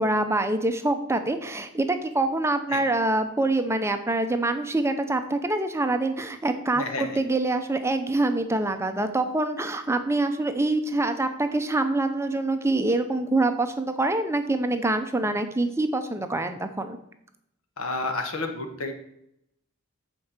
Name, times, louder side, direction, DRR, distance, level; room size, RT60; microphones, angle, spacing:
voice 1, 0.0-17.0, right 2 dB, 10° right, 8 dB, 0.6 m, -25 dB
voice 2, 6.7-7.2 17.8-18.9, left 2 dB, 70° left, 5 dB, 1.3 m, -30 dB
8.5 x 4.5 x 6.6 m, 0.76 s
head